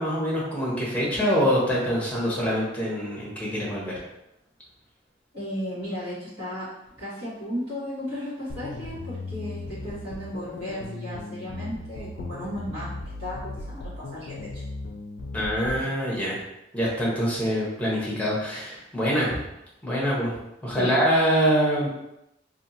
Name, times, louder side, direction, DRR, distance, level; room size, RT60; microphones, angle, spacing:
voice 1, 0.0-3.9 15.3-16.4 16.7-19.4 19.8-21.9, equal, 10° left, -5 dB, 0.8 m, -25 dB
voice 2, 5.3-6.6 7.0-12.9 13.2-14.6 20.7-20.9, equal, 60° right, -12 dB, 1.5 m, -34 dB
sound 1, 8.5-15.9, left 2 dB, 55° left, 0.3 m, -37 dB
2.6 x 2.5 x 2.7 m, 0.86 s
head